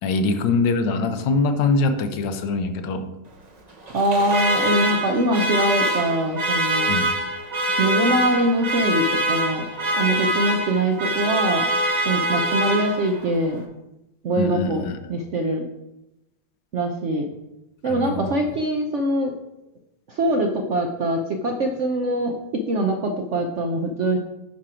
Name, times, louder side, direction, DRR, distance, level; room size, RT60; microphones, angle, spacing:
voice 1, 0.0-3.1 6.9-7.1 7.7-7.8 14.4-15.0 17.8-18.4, left 3 dB, 75° left, 8 dB, 1.4 m, -23 dB
Alarm, 3.9-13.3, right 1 dB, 35° right, 0.7 m, -24 dB
voice 2, 3.9-6.9 7.8-9.7 9.9-11.7 12.0-13.6 14.2-15.7 16.7-17.3 17.8-19.3 20.1-24.2, right 1 dB, 65° right, 3 dB, 0.7 m, -23 dB
9.9 x 4.4 x 4.9 m, 0.93 s
omnidirectional pair, 2.0 m